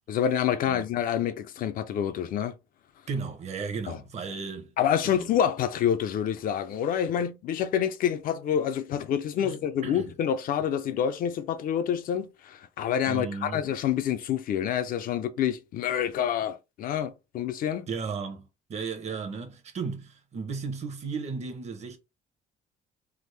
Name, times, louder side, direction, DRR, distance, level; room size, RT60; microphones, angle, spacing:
voice 1, 0.1-2.5 3.9-4.0 4.8-17.9, left 9 dB, 55° left, 0.4 m, -27 dB
voice 2, 3.1-4.7 5.0-5.3 9.4-10.1 13.1-13.6 17.9-22.0, right 5 dB, 40° right, 0.8 m, -35 dB
3.5 x 2.0 x 3.1 m
cardioid pair, 110°, 17 cm